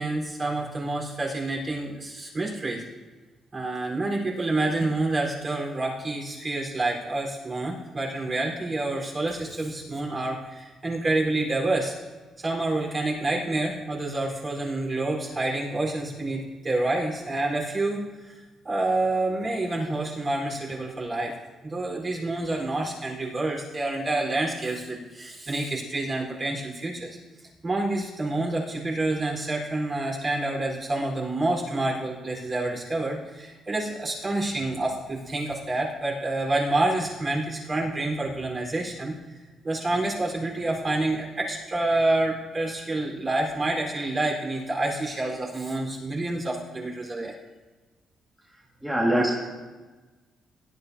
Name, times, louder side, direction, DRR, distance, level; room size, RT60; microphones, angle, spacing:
voice 1, 0.0-2.8 3.5-11.9 12.4-18.3 18.6-21.4 21.6-27.2 27.6-47.3, right 2 dB, 35° right, -2 dB, 4.3 m, -28 dB
voice 2, 48.5-49.4, right 1 dB, 5° right, -5 dB, 2.0 m, -25 dB
18.0 x 11.0 x 2.8 m, 1.3 s
cardioid pair, 90°, 0 cm